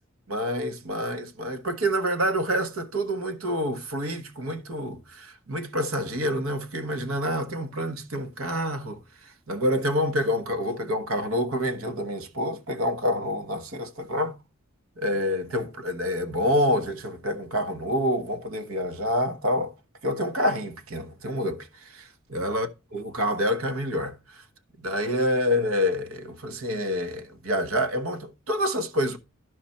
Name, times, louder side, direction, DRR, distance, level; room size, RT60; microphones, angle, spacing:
voice 1, 0.3-9.0 9.5-14.3 15.0-19.7 20.0-21.7 21.9-22.0 22.3-22.7 22.9-24.2 24.8-29.2, equal, 80° right, 1.2 m, -27 dB
12.5 x 5.1 x 4.2 m
head